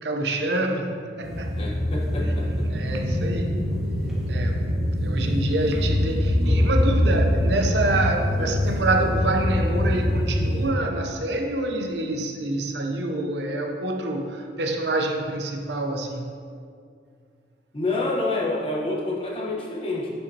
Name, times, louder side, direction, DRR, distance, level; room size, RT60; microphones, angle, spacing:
voice 1, 0.0-1.6 2.2-2.3 2.7-3.7 4.3-16.3, right 2 dB, 75° right, 3 dB, 0.7 m, -27 dB
sound 1, 1.2-10.7, left 1 dB, ahead, 1.3 m, -24 dB
voice 2, 1.6-2.7 8.4-8.5 17.7-20.1, left 2 dB, 30° left, -3 dB, 1.1 m, -28 dB
11.0 x 5.5 x 2.8 m, 2.3 s
head